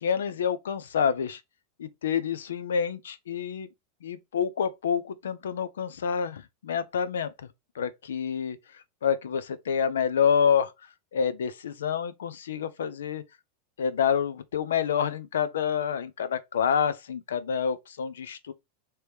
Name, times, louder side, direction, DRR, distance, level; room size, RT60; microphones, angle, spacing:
voice 1, 0.0-1.4 1.8-3.7 4.0-7.3 7.7-10.7 11.1-13.2 13.8-18.5, left 7 dB, 90° left, 0.6 m, -28 dB
3.3 x 3.0 x 4.6 m
hypercardioid pair, 115°, 0 cm